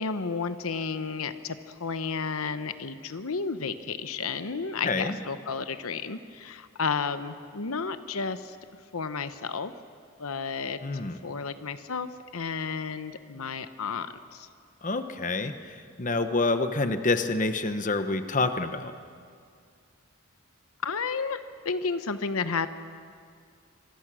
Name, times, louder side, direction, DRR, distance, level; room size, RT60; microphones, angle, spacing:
voice 1, 0.0-8.6 8.9-9.7 10.2-10.8 11.2-14.5 20.8-21.4 21.6-22.7, left 5 dB, 85° left, 11 dB, 0.9 m, -32 dB
voice 2, 4.8-5.2 10.8-11.2 14.8-18.9, left 3 dB, 35° left, 9 dB, 1.0 m, -27 dB
26.5 x 23.5 x 6.3 m, 2.2 s
head